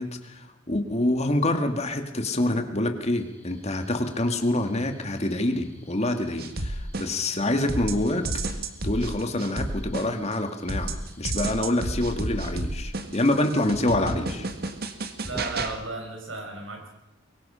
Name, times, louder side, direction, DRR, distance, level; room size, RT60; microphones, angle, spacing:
voice 1, 0.0-8.3 8.8-14.5, left 1 dB, 35° left, 6 dB, 2.1 m, -26 dB
sound 1, 3.1-15.8, equal, 10° left, 3.0 m, -47 dB
sound 2, 6.4-7.4 7.7-10.4 10.7-15.7, right 2 dB, 50° right, 1.7 m, -31 dB
voice 2, 15.2-16.9, right 2 dB, 85° right, 2 dB, 5.7 m, -35 dB
23.5 x 22.5 x 5.7 m, 0.91 s
head